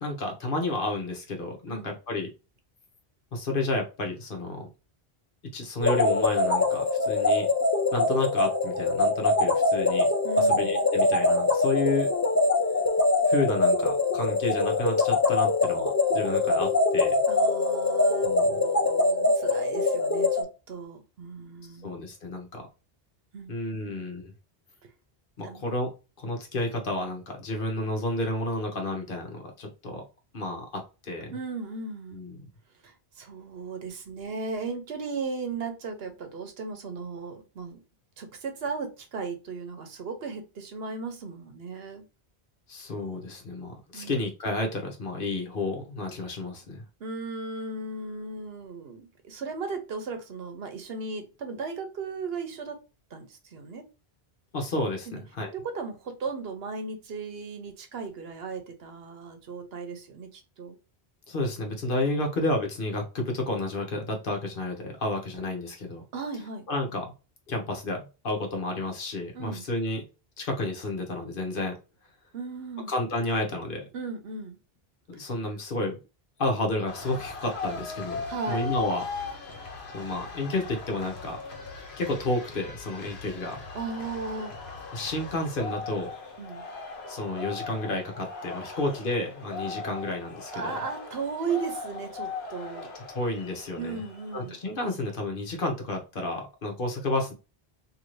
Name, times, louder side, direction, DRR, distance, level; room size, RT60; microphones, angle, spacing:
voice 1, 0.0-2.3 3.3-4.7 5.5-7.5 7.9-10.1 10.4-12.1 13.3-17.1 18.2-18.6 21.8-22.7 23.5-24.3 25.4-25.9 26.2-30.0 30.3-31.3 32.1-32.5 42.7-46.8 54.5-55.5 61.3-66.0 66.7-67.1 67.5-70.0 70.4-71.7 72.9-73.8 75.1-76.0 76.4-79.0 79.9-81.4 82.0-83.6 84.9-86.1 87.1-90.7 93.1-94.0 94.3-97.3, left 2 dB, 60° left, 2 dB, 1.1 m, -31 dB
sound 1, 5.8-20.4, left 2 dB, 25° left, 0.3 m, -23 dB
voice 2, 10.2-10.8 17.3-22.0 23.3-23.9 25.4-25.6 31.3-32.2 32.8-37.8 38.2-42.0 43.9-44.1 47.0-52.8 53.1-53.8 55.1-55.2 55.5-60.8 66.1-66.7 69.3-69.7 72.3-72.9 73.9-74.6 78.3-78.6 83.7-84.5 86.4-86.6 88.7-88.8 90.5-92.9 93.8-94.6, right 4 dB, 75° right, 6 dB, 1.0 m, -36 dB
sound 2, 76.9-94.6, left 4 dB, 85° left, 1.1 m, -39 dB
2.8 x 2.7 x 3.0 m, 0.30 s
omnidirectional pair, 1.0 m